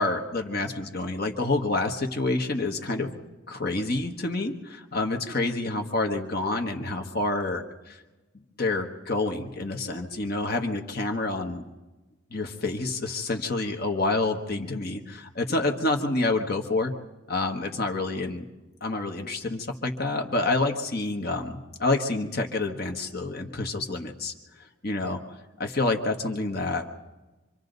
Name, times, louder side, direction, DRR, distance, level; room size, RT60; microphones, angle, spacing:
voice 1, 0.0-3.1 3.5-8.0 8.6-11.7 12.3-16.9 17.3-18.5 18.8-24.3 24.8-25.2 25.6-26.8, left 2 dB, 45° left, 3 dB, 1.4 m, -28 dB
26.5 x 24.5 x 4.0 m, 1.2 s
head